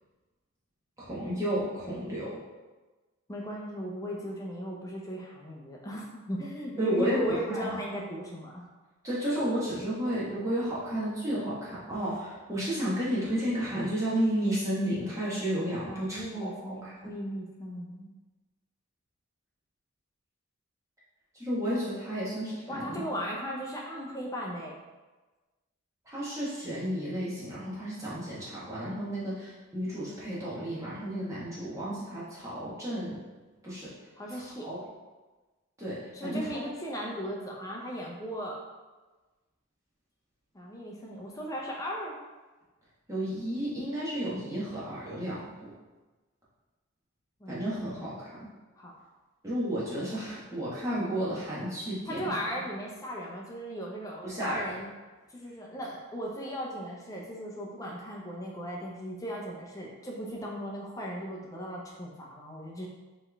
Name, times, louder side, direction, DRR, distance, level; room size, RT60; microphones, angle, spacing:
voice 1, 1.0-2.4 6.8-7.8 9.0-17.1 21.3-23.0 26.0-33.2 33.6-33.9 34.3-34.8 35.8-36.6 43.1-45.7 47.5-48.5 49.4-52.3 54.2-54.7, equal, 15° right, -9 dB, 1.1 m, -32 dB
voice 2, 3.3-8.6 15.9-18.1 22.7-24.7 34.2-34.7 36.1-38.6 40.5-42.2 47.4-47.9 48.8-48.9 52.1-54.9 55.3-62.9, equal, 15° left, -2 dB, 0.6 m, -37 dB
4.2 x 3.2 x 3.3 m, 1.2 s
head